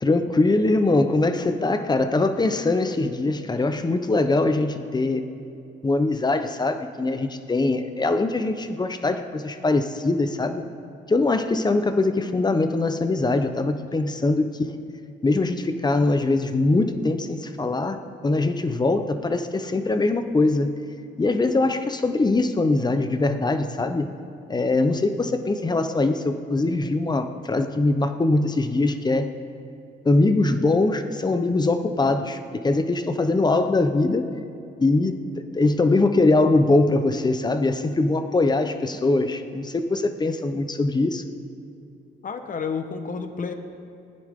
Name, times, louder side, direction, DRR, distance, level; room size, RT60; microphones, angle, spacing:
voice 1, 0.0-5.3 5.8-10.7 11.1-14.8 15.2-20.7 21.2-24.1 24.5-29.3 30.0-34.3 34.8-35.2 35.5-41.2, left 2 dB, 20° left, 8 dB, 0.9 m, -22 dB
voice 2, 42.2-43.5, left 5 dB, 40° left, 7 dB, 1.2 m, -30 dB
19.5 x 9.9 x 3.7 m, 2.7 s
cardioid pair, 90°, 20 cm